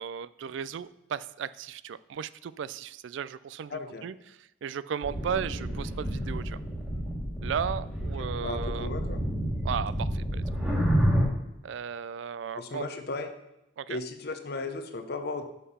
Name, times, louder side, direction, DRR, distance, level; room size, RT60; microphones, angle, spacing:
voice 1, 0.0-6.6 7.4-8.9 9.6-10.4 11.6-12.9 13.8-14.0, right 7 dB, 70° right, 17 dB, 0.3 m, -35 dB
voice 2, 3.7-4.1 8.2-9.2 12.5-13.3 13.9-15.5, left 3 dB, 55° left, 7 dB, 0.7 m, -36 dB
sound 1, 5.0-11.3, equal, 5° right, 1.4 m, -29 dB
6.4 x 5.6 x 5.5 m, 0.88 s
head